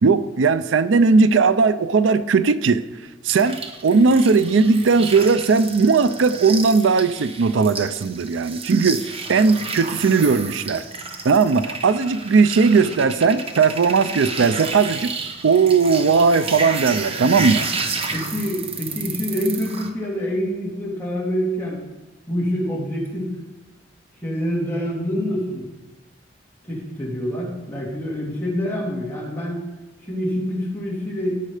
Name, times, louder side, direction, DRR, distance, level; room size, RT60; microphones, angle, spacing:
voice 1, 0.0-2.8 3.2-10.8 11.2-15.1 15.4-17.7, right 4 dB, 85° right, 14 dB, 0.5 m, -18 dB
sound 1, 3.3-19.9, right 4 dB, 30° right, 1.0 m, -31 dB
voice 2, 18.1-21.8 22.3-23.4 24.2-25.7 26.6-29.6 30.0-31.4, equal, 10° left, -5 dB, 3.2 m, -26 dB
17.0 x 6.6 x 5.0 m, 1.1 s
head